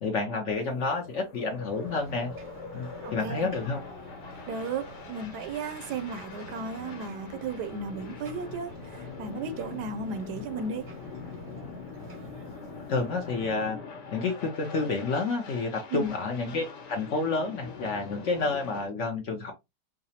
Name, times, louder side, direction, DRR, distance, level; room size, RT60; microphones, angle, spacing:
voice 1, 0.0-2.3 2.7-3.8 12.9-13.8 14.1-19.5, left 3 dB, 60° left, 0.8 m, -29 dB
sound 1, 0.5-18.9, left 5 dB, 85° left, 1.6 m, -43 dB
Ocean, 1.4-13.6, right 1 dB, 40° right, 0.7 m, -48 dB
voice 2, 3.0-3.5 4.5-10.9 15.9-16.1, right 4 dB, 80° right, 1.2 m, -35 dB
4.8 x 2.1 x 2.7 m
omnidirectional pair, 1.8 m